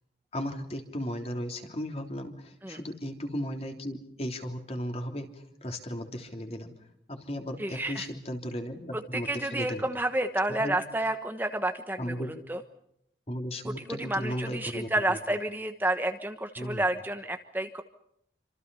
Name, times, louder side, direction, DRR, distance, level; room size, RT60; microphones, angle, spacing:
voice 1, 0.3-9.9 10.5-10.8 12.0-12.4 13.3-15.2 16.6-16.9, equal, 35° left, 4 dB, 3.4 m, -36 dB
voice 2, 7.6-8.1 9.1-12.1 12.5-12.6 13.9-17.8, right 1 dB, 10° right, 6 dB, 1.2 m, -30 dB
28.0 x 26.5 x 5.6 m, 0.73 s
head